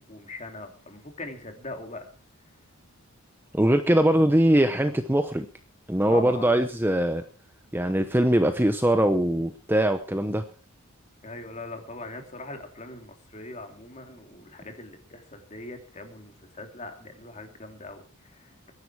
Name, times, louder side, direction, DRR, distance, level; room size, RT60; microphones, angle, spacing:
voice 1, 0.0-2.1 6.1-6.5 11.2-18.7, left 2 dB, 30° left, 4 dB, 2.9 m, -41 dB
voice 2, 3.5-5.5 5.9-7.2 7.7-10.4, right 1 dB, 10° right, 8 dB, 0.8 m, -22 dB
22.0 x 10.5 x 4.8 m, 0.42 s
head